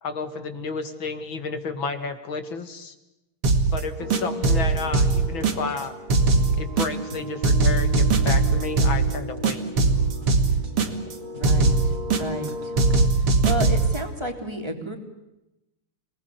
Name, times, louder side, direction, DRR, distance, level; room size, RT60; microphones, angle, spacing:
voice 1, 0.0-2.9 3.7-5.9 6.5-9.6, left 4 dB, 65° left, 9 dB, 3.1 m, -31 dB
sound 1, 3.4-3.8 4.1-5.8 6.1-7.1 7.4-9.1 9.4-11.1 11.4-12.5 12.8-14.0, right 3 dB, 80° right, 3.2 m, -20 dB
sound 2, 4.0-13.1, equal, 45° right, 3.7 m, -36 dB
voice 2, 11.3-11.7 12.2-12.7 13.2-15.0, equal, 10° right, 5 dB, 3.6 m, -31 dB
29.5 x 20.0 x 9.7 m, 0.93 s
omnidirectional pair, 2.4 m